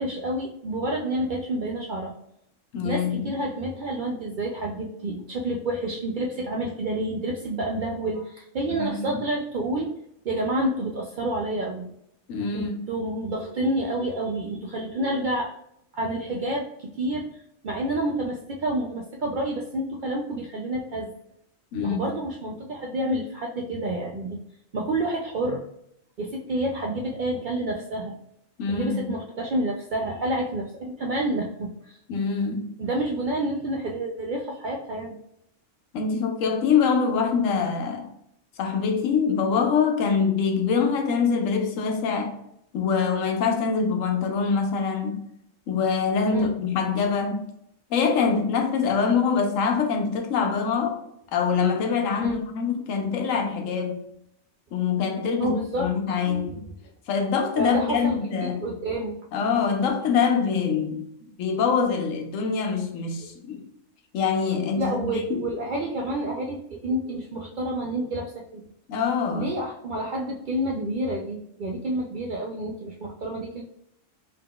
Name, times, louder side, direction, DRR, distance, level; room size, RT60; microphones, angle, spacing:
voice 1, 0.0-2.1 2.8-10.0 10.2-11.9 12.5-15.5 15.9-17.3 17.6-21.1 21.8-24.4 24.7-25.6 26.2-28.1 28.7-32.0 32.8-35.2 46.3-46.5 52.2-52.4 55.4-56.5 57.5-58.2 58.6-59.2 64.8-68.6 69.3-73.6, right 1 dB, 75° right, 0.4 m, -29 dB
voice 2, 2.7-3.3 8.7-9.2 12.3-12.8 21.7-22.0 28.6-29.1 32.1-32.7 35.9-38.1 38.6-42.4 42.7-45.2 45.7-47.4 47.9-51.0 51.3-54.0 54.7-56.6 57.1-58.6 59.3-61.1 61.4-63.6 64.1-65.5 68.9-69.5, left 6 dB, 75° left, 1.0 m, -24 dB
3.7 x 3.6 x 2.2 m
omnidirectional pair, 1.4 m